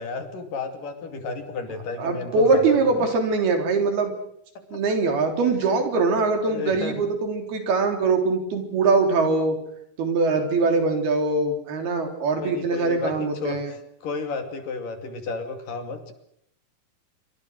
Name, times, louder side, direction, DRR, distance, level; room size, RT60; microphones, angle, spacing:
voice 1, 0.0-3.1 4.6-4.8 5.6-5.8 6.5-7.1 12.4-16.1, left 4 dB, 65° left, 6 dB, 4.1 m, -33 dB
voice 2, 2.0-4.1 4.7-9.6 10.0-13.7, right 3 dB, 85° right, 5 dB, 5.7 m, -22 dB
27.0 x 24.5 x 6.5 m, 0.71 s
omnidirectional pair, 4.3 m